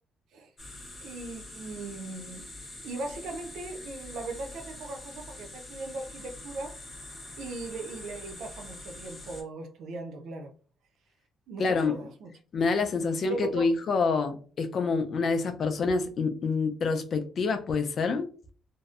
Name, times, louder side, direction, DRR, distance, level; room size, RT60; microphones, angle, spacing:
sound 1, 0.6-9.4, left 2 dB, 25° left, 0.7 m, -44 dB
voice 1, 1.0-2.5 2.8-6.7 7.4-10.5 11.5-12.3 13.3-13.7, right 3 dB, 75° right, 0.3 m, -38 dB
voice 2, 11.6-11.9 12.5-18.3, left 4 dB, 45° left, 0.4 m, -27 dB
2.6 x 2.0 x 2.3 m
cardioid pair, 140°, 0 cm